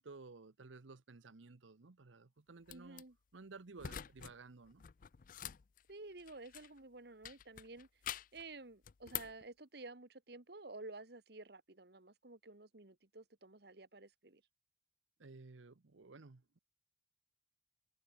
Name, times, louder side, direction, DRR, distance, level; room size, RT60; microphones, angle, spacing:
voice 1, 0.0-3.0 3.3-4.8 15.2-16.6, right 3 dB, 90° right, 0.9 m, -55 dB
sound 1, 2.7-3.0 3.8-4.3 4.6-6.8 7.2-8.4 8.8-9.4, left 10 dB, 45° left, 0.4 m, -46 dB
voice 2, 2.7-3.2 5.9-7.9 8.3-14.4, right 2 dB, 60° right, 1.6 m, -52 dB
head